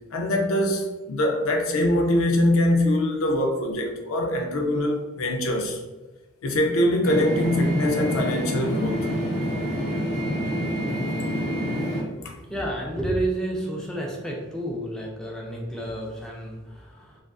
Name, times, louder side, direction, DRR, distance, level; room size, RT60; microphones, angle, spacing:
voice 1, 0.1-5.8 6.4-9.1 12.2-12.4, left 1 dB, 75° left, 0.4 m, -23 dB
sound 1, 7.0-12.0, equal, 35° left, 0.8 m, -27 dB
voice 2, 12.2-17.2, right 1 dB, 5° left, 0.3 m, -31 dB
2.4 x 2.3 x 2.2 m
head